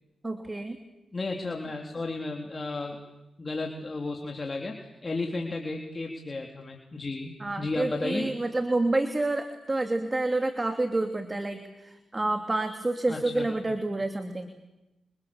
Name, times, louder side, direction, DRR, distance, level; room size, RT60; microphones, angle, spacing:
voice 1, 0.2-0.8 7.4-14.5, right 2 dB, 25° right, 7 dB, 2.9 m, -28 dB
voice 2, 1.1-3.0 3.4-8.3 13.1-13.5, left 3 dB, 35° left, 2 dB, 3.7 m, -33 dB
29.0 x 25.5 x 7.3 m, 0.96 s
supercardioid pair, 55°, 0 cm